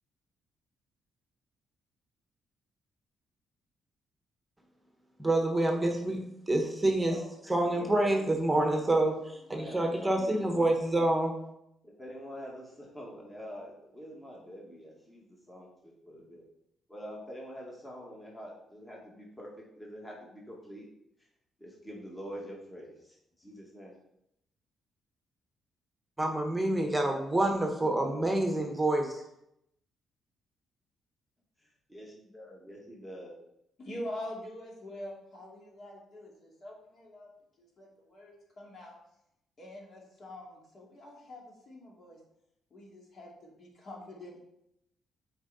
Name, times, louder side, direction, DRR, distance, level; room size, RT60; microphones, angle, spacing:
voice 1, 5.2-7.2 7.5-11.3 26.2-29.1, right 1 dB, 10° right, 2 dB, 1.2 m, -27 dB
voice 2, 9.4-10.7 11.8-16.4 16.9-20.9 21.6-24.0 31.9-33.4, equal, 15° left, -3 dB, 1.9 m, -46 dB
voice 3, 33.8-37.3 37.6-39.0 39.6-42.2 42.7-44.4, left 1 dB, 50° left, -2 dB, 2.6 m, -45 dB
8.0 x 4.7 x 4.1 m, 0.80 s
cardioid pair, 90°, 0 cm